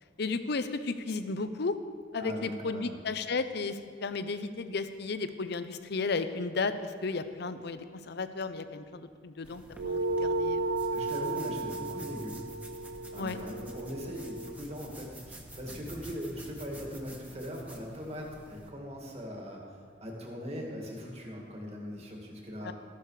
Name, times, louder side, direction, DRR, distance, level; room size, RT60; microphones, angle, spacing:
voice 1, 0.2-1.8 2.1-10.7 13.2-13.4 22.6-22.7, left 4 dB, 65° left, 11 dB, 0.7 m, -34 dB
voice 2, 2.2-3.0 10.9-12.5 13.1-19.6 20.0-22.7, equal, 35° right, 0 dB, 2.2 m, -40 dB
sound 1, 9.4-18.7, right 1 dB, 10° right, 1.3 m, -48 dB
sound 2, 9.8-14.6, right 3 dB, 85° right, 0.5 m, -34 dB
14.0 x 11.5 x 4.9 m, 2.1 s
head